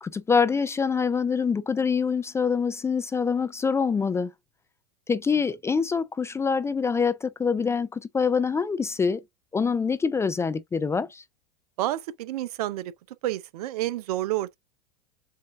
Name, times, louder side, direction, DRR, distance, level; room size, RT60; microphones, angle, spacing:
voice 1, 0.0-4.3 5.1-9.2 9.5-11.2, left 5 dB, 15° left, 0.4 m, -25 dB
voice 2, 11.8-12.9 13.2-14.6, right 15 dB, 65° right, 0.6 m, -29 dB
7.3 x 2.6 x 2.5 m
hypercardioid pair, 95°, 21 cm